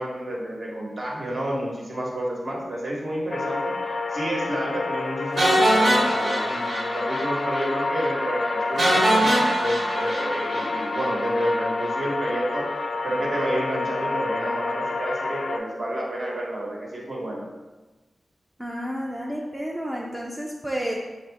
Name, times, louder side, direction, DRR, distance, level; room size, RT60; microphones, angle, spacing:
voice 1, 0.0-17.4, right 1 dB, 55° right, -3 dB, 1.1 m, -30 dB
sound 1, 3.3-15.6, left 3 dB, 65° left, 0.3 m, -29 dB
sound 2, 5.4-7.3 7.5-7.7 8.0-8.1 8.8-11.1, right 1 dB, 70° right, 1.2 m, -22 dB
voice 2, 18.6-20.9, equal, 10° right, -2 dB, 0.4 m, -31 dB
5.1 x 2.6 x 3.4 m, 1.2 s
wide cardioid pair, 135°, 0 cm